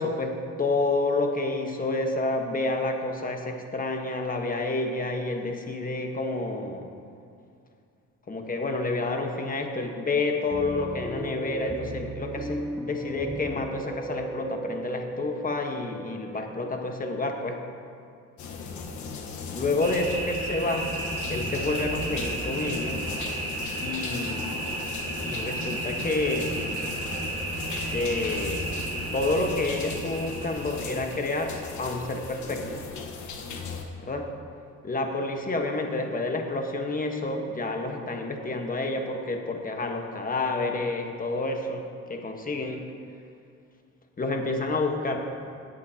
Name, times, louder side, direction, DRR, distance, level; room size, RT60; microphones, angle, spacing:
voice 1, 0.0-6.9 8.3-17.6 19.5-20.9 21.3-23.1 23.8-24.5 25.2-26.6 27.9-28.7 29.1-32.8 34.0-34.3 34.8-42.8 44.2-45.3, left 2 dB, 30° left, 3 dB, 1.3 m, -29 dB
sound 1, 10.5-18.0, right 1 dB, ahead, 0.8 m, -37 dB
sound 2, 18.4-33.8, left 4 dB, 75° left, 1.3 m, -38 dB
sound 3, 19.8-32.4, right 2 dB, 25° right, 2.6 m, -33 dB
17.5 x 8.3 x 2.9 m, 2.4 s
cardioid pair, 90°, 29 cm